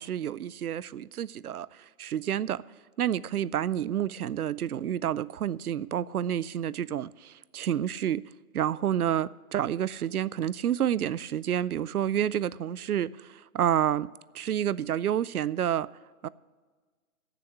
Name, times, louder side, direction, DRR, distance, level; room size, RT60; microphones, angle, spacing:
voice 1, 0.0-1.7 2.0-2.6 3.0-8.3 8.5-15.9 16.2-16.3, right 10 dB, 90° right, 0.5 m, -29 dB
14.0 x 7.0 x 6.9 m
hypercardioid pair, 145°, 43 cm